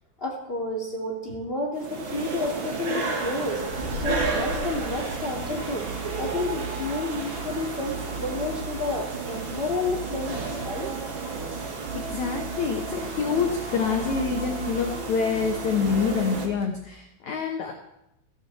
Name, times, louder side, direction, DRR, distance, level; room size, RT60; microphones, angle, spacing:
voice 1, 0.2-3.6 3.9-5.9 6.2-10.9, left 2 dB, 20° left, -2 dB, 2.0 m, -31 dB
sound 1, 1.7-16.5, right 4 dB, 45° right, 1.8 m, -32 dB
sound 2, 3.5-16.8, right 5 dB, 85° right, 1.2 m, -40 dB
sound 3, 3.7-6.0, left 3 dB, 20° right, 5.0 m, -37 dB
voice 2, 11.9-17.7, left 6 dB, 65° left, 3 dB, 2.0 m, -27 dB
16.5 x 15.0 x 4.3 m, 0.85 s
omnidirectional pair, 4.9 m